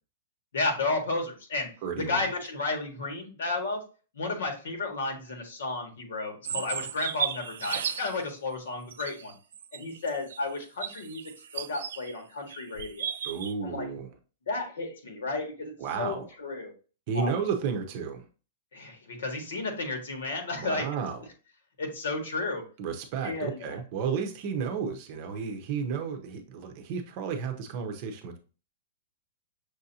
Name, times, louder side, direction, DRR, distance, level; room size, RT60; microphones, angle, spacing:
voice 1, 0.5-1.7 1.9-3.8 4.1-9.3 9.7-13.1 13.6-13.9 14.5-16.7 17.1-17.3 18.7-20.8 21.8-22.6 23.2-23.8, left 3 dB, 85° left, 3 dB, 1.6 m, -33 dB
voice 2, 1.8-2.3 13.2-14.1 15.8-16.3 17.1-18.2 20.5-21.2 22.8-28.4, right 6 dB, 30° right, 5 dB, 0.6 m, -32 dB
sound 1, 6.4-8.2 8.9-12.1 12.5-13.5, right 8 dB, 70° right, 0.4 m, -35 dB
6.2 x 2.5 x 2.8 m, 0.35 s
supercardioid pair, 180°, 0 cm